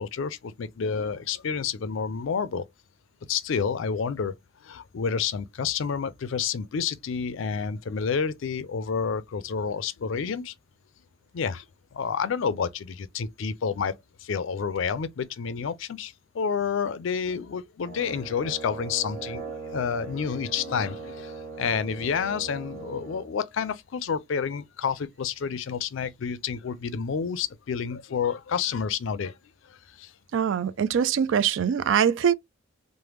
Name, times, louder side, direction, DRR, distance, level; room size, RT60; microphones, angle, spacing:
voice 1, 0.0-2.7 3.3-4.3 4.6-10.5 11.3-11.6 11.9-29.3 29.7-30.1, left 6 dB, 70° left, 0.4 m, -29 dB
Brass instrument, 17.8-23.3, right 4 dB, 40° right, 1.1 m, -40 dB
voice 2, 30.3-32.3, right 8 dB, 65° right, 0.3 m, -23 dB
3.3 x 2.1 x 3.0 m
head